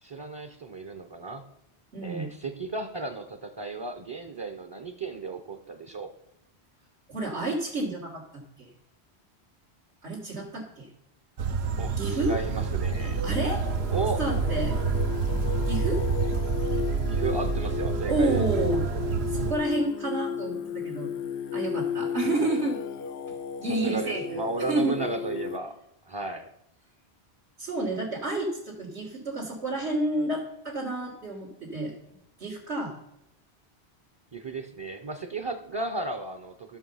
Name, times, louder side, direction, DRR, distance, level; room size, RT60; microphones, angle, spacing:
voice 1, 0.0-1.4 2.0-6.1 11.8-13.2 13.9-14.2 17.1-18.4 23.7-25.8 26.1-26.5 34.3-36.8, right 3 dB, 30° right, 6 dB, 0.6 m, -34 dB
voice 2, 1.9-2.3 7.1-8.2 8.6-8.7 10.0-10.9 12.0-12.3 13.2-13.6 14.2-14.8 15.7-16.0 18.1-18.8 19.3-21.1 21.5-22.8 23.6-25.0 27.6-31.9 32.4-33.0, right 2 dB, 90° right, -6 dB, 2.4 m, -30 dB
sound 1, 11.4-19.5, right 5 dB, 75° right, 1.0 m, -28 dB
Singing, 11.7-25.6, left 8 dB, 80° left, 0.8 m, -34 dB
12.5 x 6.6 x 5.5 m, 0.80 s
omnidirectional pair, 1.1 m